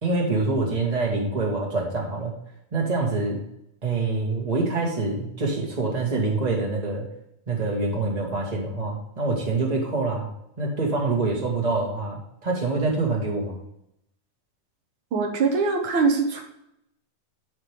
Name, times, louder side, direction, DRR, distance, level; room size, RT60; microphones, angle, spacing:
voice 1, 0.0-2.3 2.7-3.4 3.8-7.1 7.5-10.3 10.6-13.6, right 3 dB, 30° right, -2 dB, 0.7 m, -25 dB
voice 2, 15.1-16.4, right 4 dB, 90° right, 2 dB, 1.1 m, -22 dB
10.5 x 4.8 x 3.4 m, 0.79 s
omnidirectional pair, 4.1 m